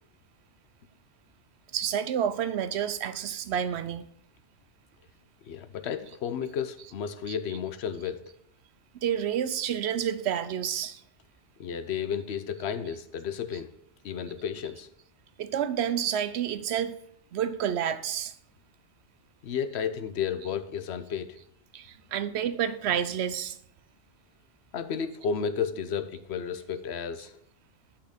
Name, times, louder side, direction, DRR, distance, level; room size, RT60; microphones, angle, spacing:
voice 1, 1.7-4.1 6.8-6.9 7.3-7.6 9.0-11.0 13.5-13.6 15.4-17.0 17.3-18.3 21.7-23.6, right 9 dB, 70° right, 0.8 m, -29 dB
voice 2, 5.4-8.3 11.6-13.7 14.0-14.9 19.4-21.4 24.7-27.4, left 7 dB, 70° left, 0.9 m, -32 dB
8.6 x 5.7 x 5.1 m
omnidirectional pair, 1.2 m